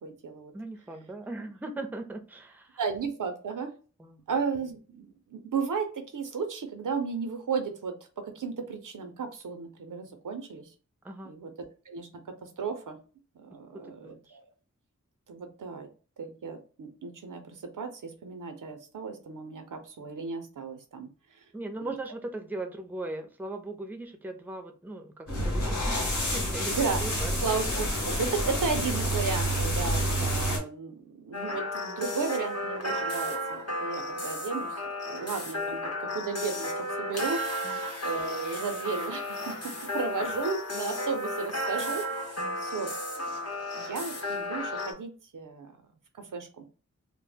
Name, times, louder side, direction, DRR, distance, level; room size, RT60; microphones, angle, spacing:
voice 1, 0.0-0.5 2.8-3.7 4.3-10.7 11.2-11.5 11.9-12.1 12.4-13.0 13.3-14.4 15.3-15.9 16.2-21.1 21.8-21.9 26.7-27.0 27.4-34.8 35.1-36.7 37.0-37.4 38.0-42.9 43.8-45.8 46.2-46.6, right 5 dB, 90° right, 6 dB, 0.5 m, -34 dB
voice 2, 0.5-2.8 4.0-4.2 11.0-11.3 13.9-14.4 21.5-26.7 27.0-27.3 37.6-37.8 42.4-42.6, right 2 dB, 5° right, 6 dB, 0.4 m, -39 dB
sound 1, 25.3-30.6, equal, 75° left, 0.9 m, -28 dB
sound 2, 31.3-44.9, left 1 dB, 55° left, 0.8 m, -33 dB
2.0 x 2.0 x 3.3 m, 0.37 s
wide cardioid pair, 50°, 31 cm